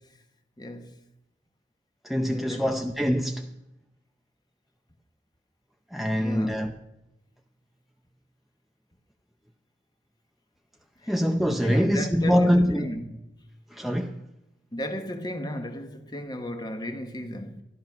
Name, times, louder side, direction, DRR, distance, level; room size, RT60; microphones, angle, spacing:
voice 1, 0.6-1.0 2.2-2.7 6.1-6.6 11.0-11.1 11.6-13.2 14.7-17.6, left 1 dB, 25° left, 1.1 m, -35 dB
voice 2, 2.0-3.5 5.9-6.7 11.1-12.9 13.7-14.1, equal, ahead, 0.6 m, -24 dB
13.0 x 12.5 x 5.8 m
head